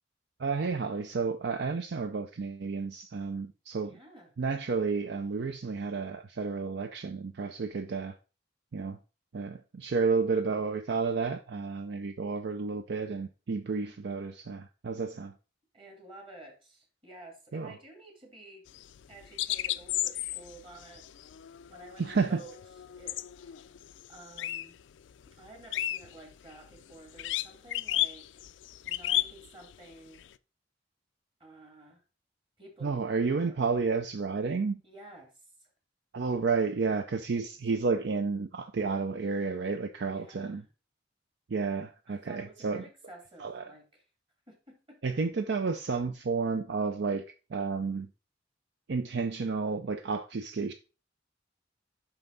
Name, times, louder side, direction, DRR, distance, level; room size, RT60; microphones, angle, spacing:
voice 1, 0.4-3.9 4.4-8.2 8.7-9.0 9.3-15.3 17.5-17.7 22.0-22.4 32.8-34.8 36.1-40.6 41.5-42.8 43.4-43.7 45.0-47.2 47.5-48.1 48.9-50.7, right 4 dB, 65° right, 0.5 m, -31 dB
voice 2, 3.8-4.3 15.7-18.7 19.1-21.1 21.7-22.6 23.0-23.7 24.1-24.8 25.3-28.4 28.8-30.3 31.4-32.0 32.6-33.6 34.8-35.7 37.3-37.4 40.1-40.7 42.1-44.0 44.5-45.0, right 2 dB, 30° right, 2.4 m, -52 dB
sound 1, 18.7-24.8 25.1-30.3, left 15 dB, 75° left, 0.3 m, -34 dB
5.8 x 5.6 x 3.9 m
head